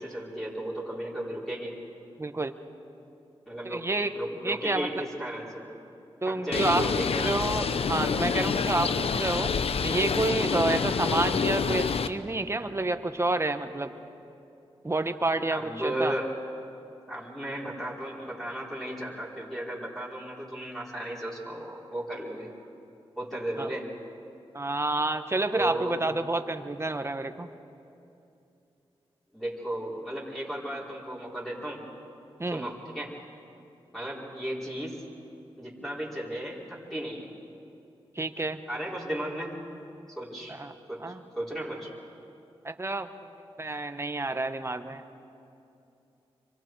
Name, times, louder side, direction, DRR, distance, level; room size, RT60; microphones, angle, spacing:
voice 1, 0.0-1.7 3.5-3.9 4.1-5.7 6.2-7.3 10.7-10.8 15.5-16.3 17.1-22.5 23.2-23.9 25.5-25.9 29.3-31.8 32.5-33.1 33.9-35.0 35.6-37.3 38.7-39.6 40.2-40.6 40.9-41.9, right 1 dB, 5° left, -5 dB, 4.4 m, -34 dB
voice 2, 2.2-2.5 3.6-4.1 4.4-5.0 6.2-6.8 7.2-9.5 9.8-13.9 14.8-16.1 23.6-23.7 24.5-27.5 32.4-32.7 38.1-38.6 40.5-40.7 41.0-41.2 42.6-43.1 43.6-45.0, right 2 dB, 25° right, 8 dB, 1.2 m, -29 dB
Bird, 6.5-12.1, left 6 dB, 70° left, 0.7 m, -27 dB
26.0 x 24.0 x 4.7 m, 2.7 s
cardioid pair, 55°, 10 cm